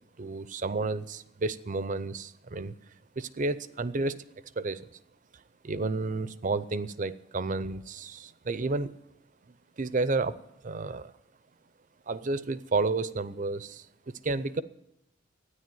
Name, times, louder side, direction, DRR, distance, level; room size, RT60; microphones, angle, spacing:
voice 1, 0.2-2.7 3.2-4.2 4.6-4.8 5.6-8.9 9.8-10.3 10.6-11.1 12.1-13.8 14.2-14.6, right 3 dB, 40° right, 15 dB, 0.6 m, -31 dB
13.0 x 9.9 x 9.2 m, 0.84 s
head